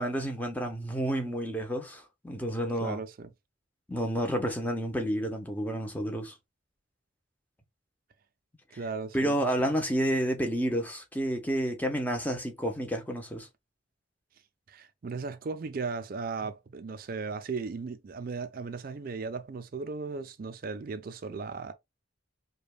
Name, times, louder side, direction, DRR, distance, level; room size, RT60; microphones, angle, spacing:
voice 1, 0.0-3.0 3.9-6.3 9.1-13.5, equal, 10° left, 0.7 m, -30 dB
voice 2, 2.8-3.3 8.8-9.5 14.7-21.7, right 4 dB, 45° right, 0.4 m, -36 dB
5.0 x 2.3 x 2.3 m
head